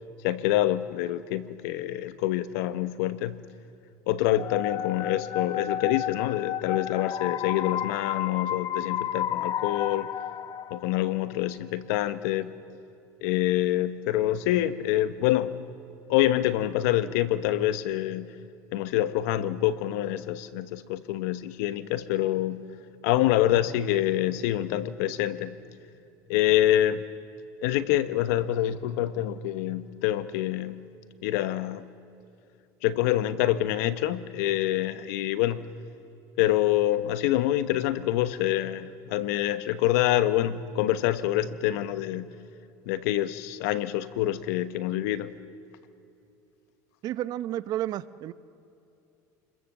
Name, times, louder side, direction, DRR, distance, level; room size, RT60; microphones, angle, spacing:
voice 1, 0.2-3.4 4.1-10.1 10.7-12.5 13.2-15.6 16.1-18.3 18.7-22.6 23.0-25.6 26.3-27.0 27.6-30.8 31.2-31.9 32.8-35.7 36.4-42.3 42.9-45.3, left 13 dB, 80° left, 1.1 m, -26 dB
sound 1, 4.4-11.2, left 10 dB, 45° left, 1.1 m, -32 dB
voice 2, 47.0-48.3, right 13 dB, 55° right, 0.8 m, -31 dB
29.5 x 22.0 x 7.4 m
supercardioid pair, 120°, 8 cm